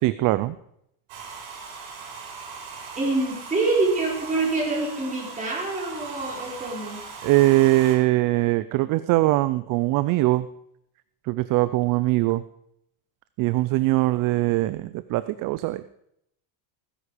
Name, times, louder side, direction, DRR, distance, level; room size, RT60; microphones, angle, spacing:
voice 1, 0.0-0.6 7.2-10.5 11.2-12.4 13.4-15.8, right 18 dB, 45° right, 14 dB, 0.5 m, -21 dB
Domestic sounds home sounds, 1.1-8.0, right 5 dB, 70° right, 5.1 m, -39 dB
voice 2, 2.9-7.0, right 3 dB, 15° right, -3 dB, 5.1 m, -26 dB
17.5 x 10.0 x 5.0 m, 0.74 s
cardioid pair, 150°, 48 cm